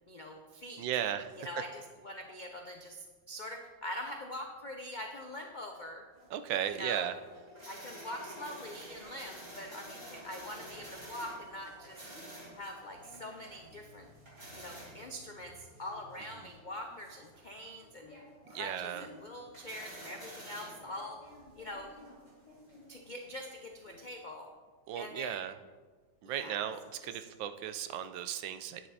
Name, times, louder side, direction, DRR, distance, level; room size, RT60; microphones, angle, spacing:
voice 1, 0.1-0.9 1.4-6.1 6.7-7.1 7.7-12.0 12.5-14.1 14.5-18.1 18.5-21.2 21.6-21.9 22.9-24.5 24.9-25.4 26.2-26.7 27.0-27.1, left 1 dB, 85° left, 2 dB, 0.4 m, -44 dB
voice 2, 0.8-1.5 6.3-7.1 18.5-19.1 24.9-25.5 26.2-28.8, right 10 dB, 90° right, 10 dB, 1.4 m, -36 dB
sound 1, 6.2-24.0, equal, 30° right, 3.4 m, -51 dB
9.5 x 9.0 x 4.1 m, 1.4 s
omnidirectional pair, 2.0 m